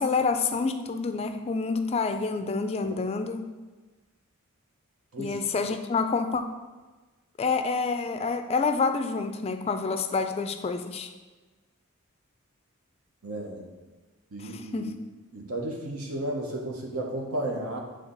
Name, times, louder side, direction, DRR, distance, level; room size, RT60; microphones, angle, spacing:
voice 1, 0.0-3.4 5.2-6.4 7.4-11.1 14.4-14.9, left 4 dB, 30° left, 8 dB, 0.3 m, -28 dB
voice 2, 13.2-13.7 14.3-14.9 15.3-17.8, right 1 dB, 85° right, 0 dB, 1.1 m, -33 dB
7.9 x 3.3 x 3.9 m, 1.3 s
head